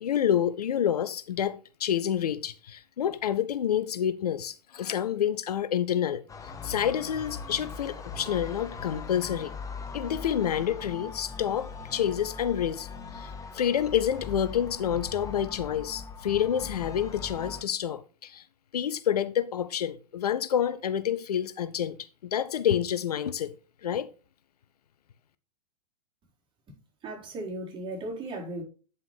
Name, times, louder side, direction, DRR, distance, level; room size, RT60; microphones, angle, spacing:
voice 1, 0.0-6.2 6.6-9.5 9.9-12.9 13.1-18.4 18.7-22.0 22.3-23.5 23.8-24.1, left 9 dB, 75° left, 0.7 m, -28 dB
sound 1, 6.3-17.6, left 5 dB, 15° left, 1.2 m, -40 dB
voice 2, 27.0-28.6, right 1 dB, 25° right, 4.3 m, -36 dB
9.4 x 5.7 x 3.4 m
hypercardioid pair, 105°, 20 cm